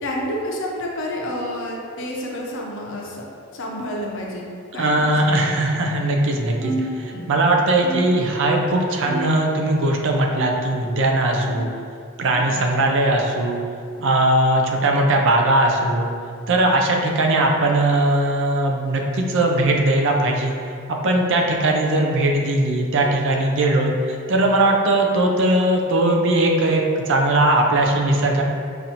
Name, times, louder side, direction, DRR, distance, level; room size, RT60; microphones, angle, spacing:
voice 1, 0.0-3.2 3.5-5.6 7.0-7.3 12.3-12.6 21.8-21.9, left 1 dB, 65° left, -2 dB, 0.7 m, -30 dB
voice 2, 4.8-11.7 12.2-13.6 14.0-16.1 16.5-20.5 21.0-28.4, right 1 dB, 65° right, 1 dB, 0.5 m, -19 dB
sound 1, 6.6-7.5 7.8-8.6 9.0-9.7 10.3-10.9 11.5-11.9 12.7-12.9 13.9-14.1 15.1-15.4 16.4-16.6 17.6-17.8 18.8-19.0 20.0-20.1 21.3-21.4, right 1 dB, 35° right, 1.1 m, -33 dB
5.7 x 2.5 x 2.8 m, 2.4 s
head